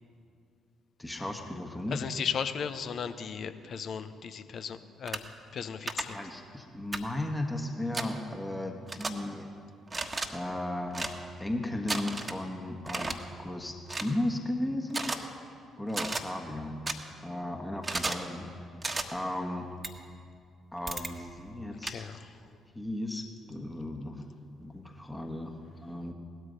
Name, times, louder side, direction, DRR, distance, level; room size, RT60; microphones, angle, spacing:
voice 1, 1.0-2.0 6.1-9.5 10.3-11.1 11.4-13.1 13.4-15.1 15.8-16.9 17.2-18.5 19.1-19.7 20.7-22.1 22.7-24.3 24.6-26.1, left 1 dB, 10° left, 3 dB, 1.5 m, -35 dB
voice 2, 1.9-5.2 5.5-6.2 21.8-22.3, left 7 dB, 50° left, 11 dB, 0.8 m, -36 dB
sound 1, 5.1-5.2 5.9-6.0 6.9-7.0 7.9-8.1 8.9-9.1 9.9-10.3 10.9-11.1 11.9-12.4 12.9-13.1 13.9-14.1 14.9-15.2 15.9-16.2 16.9-17.0 17.8-18.2 18.8-19.0 19.8-19.9 20.9-21.1 21.9-22.0, right 3 dB, 25° right, 1.4 m, -33 dB
18.0 x 12.5 x 5.3 m, 2.4 s
figure-of-eight pair, 45°, 0 cm